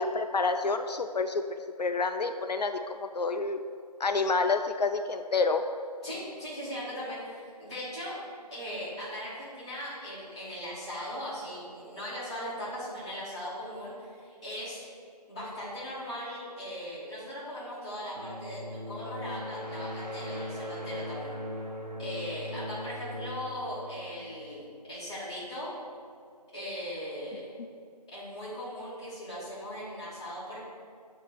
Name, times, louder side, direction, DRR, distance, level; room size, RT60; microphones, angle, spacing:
voice 1, 0.0-1.4 1.8-3.6 4.0-5.6, left 4 dB, 75° left, 7 dB, 0.4 m, -28 dB
voice 2, 6.0-8.2 8.5-14.8 15.3-21.3 22.0-25.7 26.5-27.4 28.1-30.6, equal, 10° left, -14 dB, 1.1 m, -39 dB
sound 1, 18.2-24.8, equal, 90° right, 1.0 m, -39 dB
7.2 x 2.9 x 4.5 m, 2.3 s
figure-of-eight pair, 170°, 21 cm